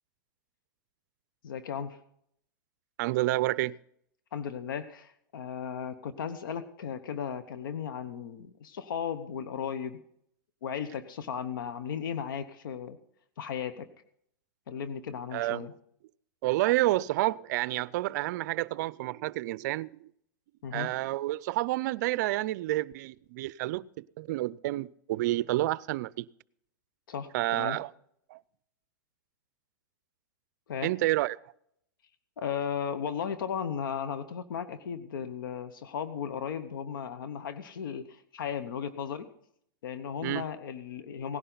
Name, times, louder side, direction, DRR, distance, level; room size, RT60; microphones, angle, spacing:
voice 1, 1.4-2.0 4.3-10.0 10.6-13.0 13.4-13.9 14.7-15.7 20.6-20.9 27.1-27.8 30.7-30.9 32.4-39.3 39.8-41.4, left 7 dB, 80° left, 11 dB, 1.0 m, -35 dB
voice 2, 3.0-3.7 15.3-15.7 16.4-20.1 20.7-26.3 27.3-27.9 28.3-28.4 30.8-31.4 40.2-40.4, right 17 dB, 60° right, 21 dB, 0.5 m, -29 dB
17.5 x 11.0 x 4.0 m, 0.70 s
hypercardioid pair, 130°, 11 cm